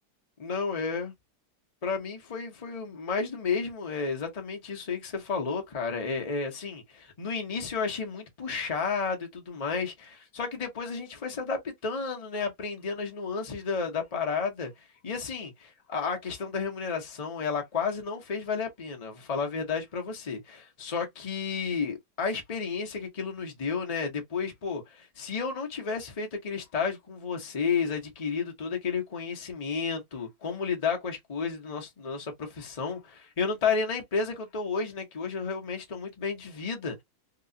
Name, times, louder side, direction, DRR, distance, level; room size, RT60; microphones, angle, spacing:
voice 1, 0.4-1.1 1.8-14.7 15.0-37.0, left 5 dB, 50° left, 0.4 m, -32 dB
3.0 x 2.9 x 2.6 m
omnidirectional pair, 2.3 m